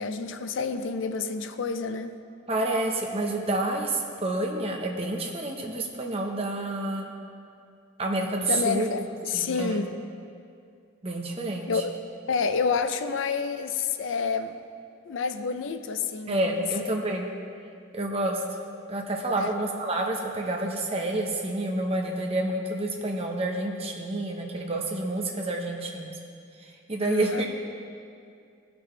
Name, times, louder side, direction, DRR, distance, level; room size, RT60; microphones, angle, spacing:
voice 1, 0.0-2.1 8.5-9.9 11.7-11.9 12.3-14.5 15.1-16.7 19.4-19.5 27.0-27.5, left 5 dB, 70° left, 9 dB, 0.5 m, -29 dB
voice 2, 2.5-7.1 8.0-8.9 9.3-9.8 11.0-11.8 16.3-17.3 17.9-18.4 18.9-26.1 26.9-27.5, right 2 dB, 30° right, 1 dB, 1.0 m, -29 dB
18.0 x 6.1 x 3.3 m, 2.4 s
head